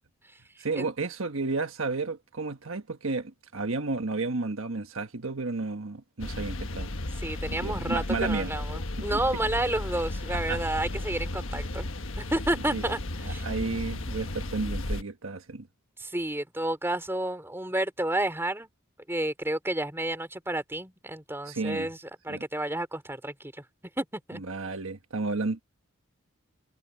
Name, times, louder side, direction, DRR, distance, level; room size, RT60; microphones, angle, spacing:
voice 1, 0.6-6.9 7.6-8.5 9.0-9.2 10.5-10.6 12.7-12.9 13.2-15.7 21.4-21.9 22.3-22.4 24.4-25.6, right 3 dB, 75° right, 1.4 m, -32 dB
sound 1, 6.2-15.0, left 1 dB, 70° left, 1.4 m, -34 dB
voice 2, 7.2-11.9 12.2-13.5 16.0-18.7 19.1-22.0 22.2-23.5 24.0-24.4, right 1 dB, 10° right, 3.7 m, -30 dB
head